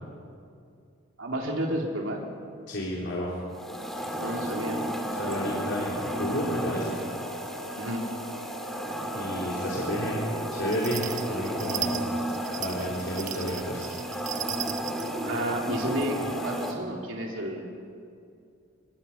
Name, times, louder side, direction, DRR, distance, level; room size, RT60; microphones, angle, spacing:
voice 1, 1.2-2.2 4.2-4.8 7.8-8.0 15.2-16.2 16.4-17.6, right 1 dB, 80° right, 0 dB, 2.9 m, -31 dB
voice 2, 2.7-3.3 5.2-7.0 9.1-10.2 10.5-12.0 12.6-13.9, equal, 65° left, -5 dB, 3.6 m, -31 dB
sound 1, 3.5-16.7, equal, ahead, 2.1 m, -33 dB
sound 2, 10.7-15.1, right 9 dB, 40° right, 1.1 m, -36 dB
23.5 x 20.5 x 5.7 m, 2.4 s
head